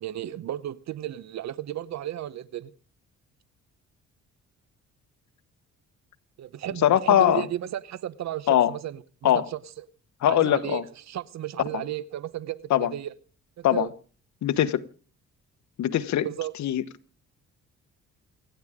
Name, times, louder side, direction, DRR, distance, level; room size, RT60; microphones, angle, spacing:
voice 1, 0.0-2.7 6.4-9.6 10.3-13.1 13.6-13.9 16.2-16.5, right 12 dB, 65° right, 0.8 m, -34 dB
voice 2, 6.8-7.5 8.5-8.7 9.2-9.5 10.2-10.8 11.7-11.8 12.7-12.9 13.6-13.9 14.4-14.8 15.8-16.3 16.6-16.8, left 11 dB, 65° left, 1.2 m, -21 dB
29.0 x 10.0 x 3.6 m
cardioid pair, 90°, 30 cm